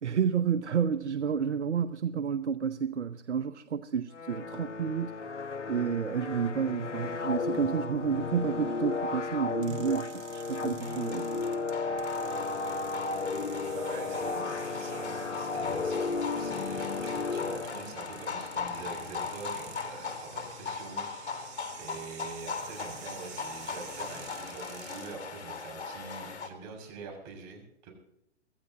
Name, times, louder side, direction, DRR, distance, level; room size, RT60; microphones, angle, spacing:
voice 1, 0.0-5.1 5.7-11.4, right 7 dB, 75° right, 0.9 m, -30 dB
sound 1, 4.1-18.2, left 4 dB, 90° left, 0.9 m, -34 dB
sound 2, 9.6-25.1, right 11 dB, 20° right, 2.0 m, -50 dB
sound 3, 10.8-26.5, left 5 dB, 65° left, 3.7 m, -39 dB
voice 2, 13.7-27.9, right 4 dB, 35° right, 6.4 m, -45 dB
24.5 x 15.0 x 2.8 m
hypercardioid pair, 130°, 35 cm